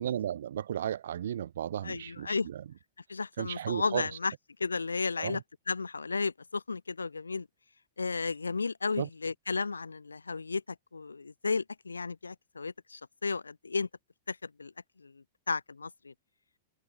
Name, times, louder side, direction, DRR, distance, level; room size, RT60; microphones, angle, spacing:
voice 1, 0.0-2.6 3.4-4.1 5.2-5.4 9.0-9.1, right 10 dB, 65° right, 3.5 m, -34 dB
voice 2, 1.8-2.5 3.1-4.3 4.6-5.4 5.7-7.5 8.0-10.6 10.9-13.9 14.3-14.7 15.0-16.1, left 4 dB, 85° left, 0.6 m, -33 dB
figure-of-eight pair, 100°, 0 cm